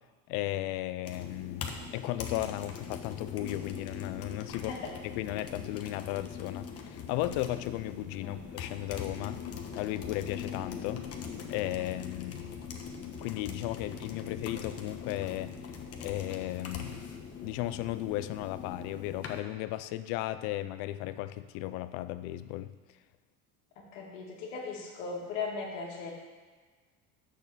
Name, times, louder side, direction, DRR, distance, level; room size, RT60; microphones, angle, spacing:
voice 1, 0.3-4.7 5.0-9.4 9.8-11.1 11.5-12.5 13.2-15.6 16.0-17.0 17.4-22.7, left 15 dB, 70° left, 14 dB, 0.6 m, -35 dB
sound 1, 1.0-19.4, left 6 dB, 40° left, 1.2 m, -42 dB
voice 2, 23.9-26.1, left 4 dB, 85° left, -1 dB, 2.1 m, -38 dB
6.6 x 6.1 x 6.8 m, 1.5 s
supercardioid pair, 95°, 37 cm